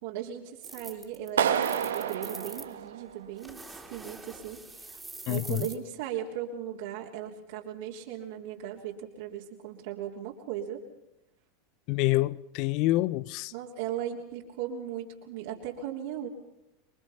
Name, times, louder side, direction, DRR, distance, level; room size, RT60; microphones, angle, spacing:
voice 1, 0.0-5.0 5.3-10.8 13.5-16.3, right 10 dB, 65° right, 3.4 m, -37 dB
sound 1, 0.6-2.7 3.4-5.8, right 2 dB, 10° right, 3.2 m, -44 dB
Clapping, 1.4-3.4, right 8 dB, 85° right, 1.7 m, -29 dB
voice 2, 5.3-5.7 11.9-13.5, left 18 dB, 55° left, 0.9 m, -27 dB
27.0 x 22.5 x 5.8 m
hypercardioid pair, 95°, 0 cm